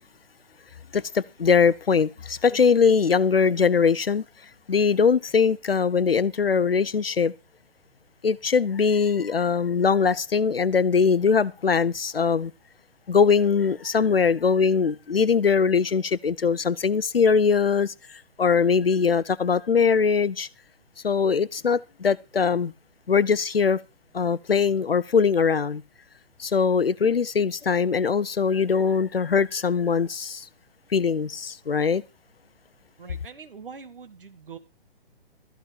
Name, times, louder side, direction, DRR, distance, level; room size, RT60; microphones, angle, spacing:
voice 1, 0.9-4.2 4.7-7.3 8.2-12.5 13.1-17.9 18.4-20.5 21.0-22.7 23.1-23.8 24.1-25.8 26.4-30.5 30.9-32.0, left 5 dB, 70° left, 0.8 m, -21 dB
voice 2, 33.0-34.6, right 6 dB, 60° right, 2.1 m, -43 dB
13.5 x 5.3 x 8.7 m
figure-of-eight pair, 130°, 30 cm